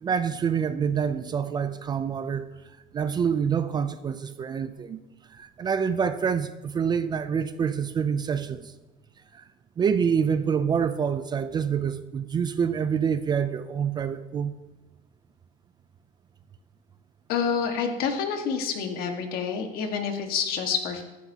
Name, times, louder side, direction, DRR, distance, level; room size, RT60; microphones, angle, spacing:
voice 1, 0.0-2.5 2.9-5.0 5.3-8.7 9.3-9.4 9.8-14.5, right 7 dB, 25° right, 12 dB, 0.4 m, -26 dB
voice 2, 17.3-21.0, left 6 dB, 60° left, 4 dB, 1.7 m, -28 dB
14.5 x 12.0 x 2.8 m, 1.1 s
cardioid pair, 160°, 18 cm